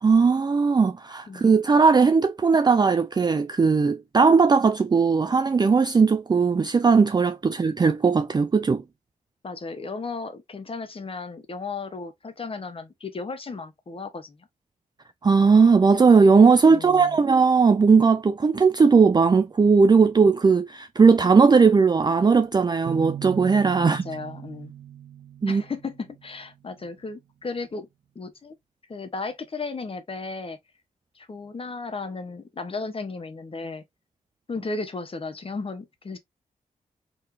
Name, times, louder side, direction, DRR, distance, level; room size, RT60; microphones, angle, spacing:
voice 1, 0.0-8.8 15.2-24.0 25.4-25.6, right 5 dB, 30° right, 0.4 m, -18 dB
voice 2, 9.4-14.4 16.6-17.2 23.8-24.7 25.5-27.9 28.1-28.5 28.9-30.6 31.1-33.8 34.5-36.2, left 4 dB, 40° left, 1.1 m, -35 dB
sound 1, 22.9-26.5, right 10 dB, 60° right, 1.1 m, -39 dB
3.9 x 3.2 x 2.7 m
cardioid pair, 65°, 15 cm